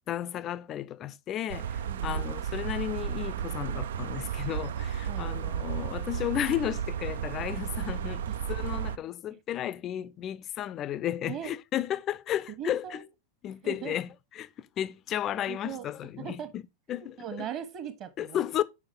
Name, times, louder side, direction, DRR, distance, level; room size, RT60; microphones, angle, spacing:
voice 1, 0.1-8.2 8.5-12.8 13.4-14.1 14.4-16.6 16.9-17.2 18.2-18.6, left 11 dB, 30° left, 0.5 m, -33 dB
sound 1, 1.5-9.0, right 9 dB, 60° right, 0.4 m, -33 dB
voice 2, 1.9-2.3 5.1-5.3 8.3-8.4 9.3-9.4 11.3-11.5 12.6-13.0 13.6-14.0 15.5-15.9 16.2-16.5 16.9-18.4, right 8 dB, 35° right, 1.3 m, -39 dB
7.2 x 5.1 x 3.7 m
figure-of-eight pair, 90°, 0 cm